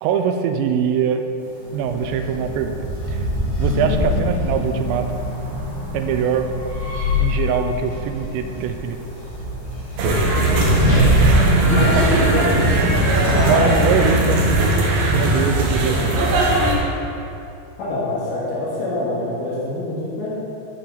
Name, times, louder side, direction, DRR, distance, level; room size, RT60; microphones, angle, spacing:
voice 1, 0.0-1.3 1.7-3.3 3.6-5.1 5.9-6.5 7.2-9.0 11.7-12.0 13.2-14.4 15.1-16.3, right 7 dB, 85° right, 7 dB, 2.8 m, -22 dB
sound 1, 1.4-14.0, right 1 dB, 40° right, 0.6 m, -30 dB
sound 2, 1.6-13.7, left 1 dB, 60° left, 1.6 m, -25 dB
sound 3, 10.0-16.7, right 1 dB, 70° right, 2.7 m, -18 dB
voice 2, 10.7-11.1 11.6-12.6 13.2-13.7 17.8-20.3, left 2 dB, 75° left, -8 dB, 4.2 m, -25 dB
14.5 x 5.7 x 3.9 m, 2.7 s
omnidirectional pair, 5.1 m